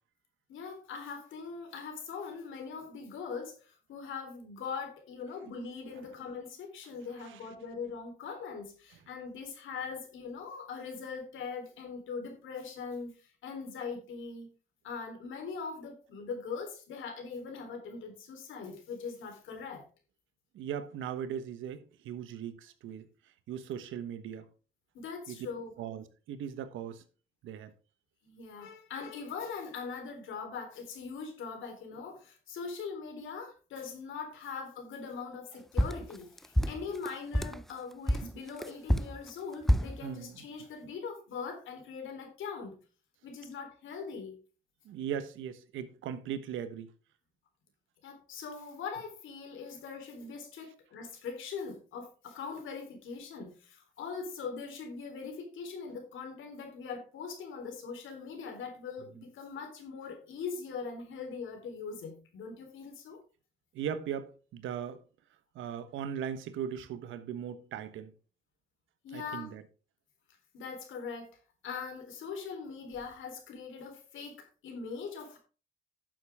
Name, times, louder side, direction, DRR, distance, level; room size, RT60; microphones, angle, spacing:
voice 1, 0.5-14.5 14.8-19.9 24.9-25.7 28.2-42.8 43.2-44.4 48.0-63.2 69.0-69.5 70.5-71.4 71.6-75.4, left 5 dB, 80° left, 3.7 m, -41 dB
voice 2, 20.5-23.1 23.5-24.5 25.3-25.4 25.8-27.0 27.4-27.7 36.6-36.7 38.2-38.4 40.0-40.4 44.8-46.9 63.7-65.0 65.5-68.1 69.1-69.6, right 8 dB, 85° right, 1.2 m, -39 dB
sound 1, 35.8-37.6 38.1-40.0, equal, ahead, 0.4 m, -28 dB
11.5 x 7.5 x 3.6 m
cardioid pair, 90°, 20 cm